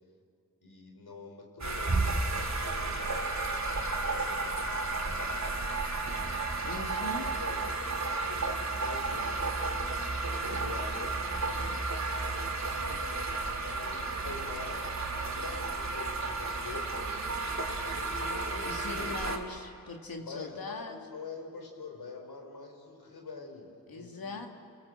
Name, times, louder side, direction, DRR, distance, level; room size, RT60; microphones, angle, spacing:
voice 1, 0.6-5.4 6.0-6.3 6.6-7.1 7.4-7.8 8.3-9.6 10.4-11.2 12.6-13.0 13.5-14.8 15.2-17.3 17.8-19.3 20.3-24.4, left 4 dB, 90° left, 3 dB, 4.1 m, -46 dB
sound 1, 1.6-19.4, right 3 dB, 50° right, 2.8 m, -32 dB
voice 2, 6.6-7.3 18.6-21.0 23.9-24.5, left 3 dB, 70° left, 2 dB, 2.5 m, -40 dB
29.0 x 19.5 x 7.7 m, 2.3 s
cardioid pair, 50°, 36 cm